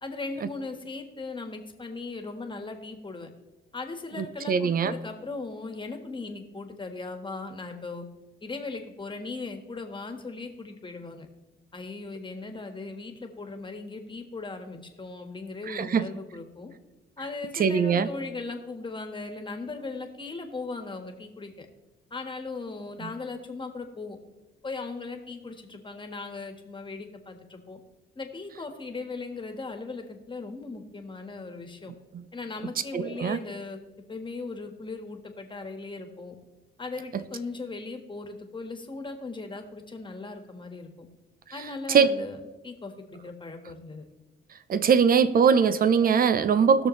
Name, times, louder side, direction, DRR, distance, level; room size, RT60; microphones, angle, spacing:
voice 1, 0.0-3.3 3.7-8.0 8.4-11.3 11.7-16.7 17.2-21.7 22.1-24.2 24.6-27.8 28.1-31.9 32.3-33.8 34.1-36.4 36.8-41.1 41.5-44.0, left 3 dB, 25° left, 1.6 m, -38 dB
voice 2, 4.2-4.9 15.7-16.1 17.5-18.1 23.0-23.1 32.1-32.2 32.9-33.4 41.9-42.1 44.7-46.9, right 6 dB, 45° right, 0.7 m, -22 dB
19.0 x 6.6 x 3.2 m
cardioid pair, 90°, 20 cm